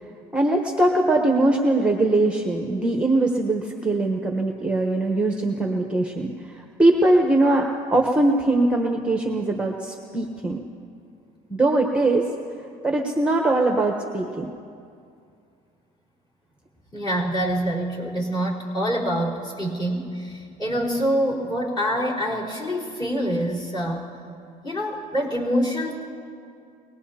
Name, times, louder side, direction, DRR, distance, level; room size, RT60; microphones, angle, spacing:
voice 1, 0.3-10.6 11.5-12.3 12.8-14.5, right 2 dB, 5° right, 2 dB, 1.1 m, -21 dB
voice 2, 16.9-24.1 24.6-25.9, equal, 25° left, -6 dB, 4.0 m, -25 dB
24.0 x 19.5 x 2.8 m, 2.4 s
cardioid pair, 110°, 17 cm